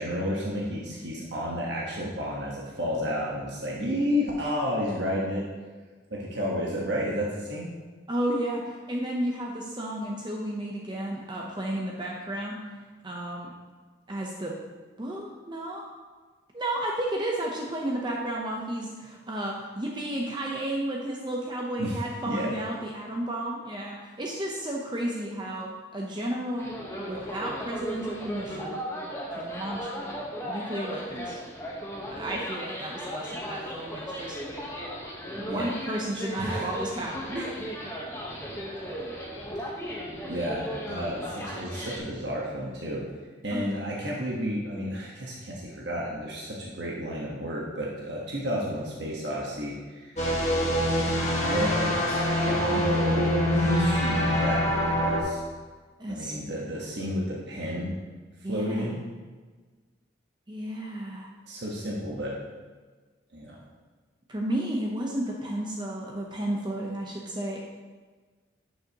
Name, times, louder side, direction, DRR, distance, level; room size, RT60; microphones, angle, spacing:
voice 1, 0.0-5.4 6.1-7.7 21.8-22.0 22.2-22.5 35.5-35.7 36.4-36.8 39.8-40.0 40.3-43.0 43.4-50.4 51.3-53.3 53.8-55.4 56.1-57.9 58.5-59.0 61.5-62.3 63.3-63.6, equal, 65° right, -4 dB, 1.2 m, -31 dB
voice 2, 8.1-12.6 13.0-13.5 14.1-14.6 15.0-15.8 16.5-28.8 29.3-29.9 30.4-31.4 32.1-34.5 35.4-37.6 43.5-43.7 56.0-56.3 58.4-59.0 60.5-61.3 64.3-67.7, right 1 dB, 25° right, -1 dB, 0.7 m, -32 dB
sound 1, 26.6-42.0, equal, 15° left, 1.1 m, -36 dB
sound 2, 50.2-55.2, equal, 40° left, 1.5 m, -24 dB
10.5 x 6.4 x 2.9 m, 1.4 s
head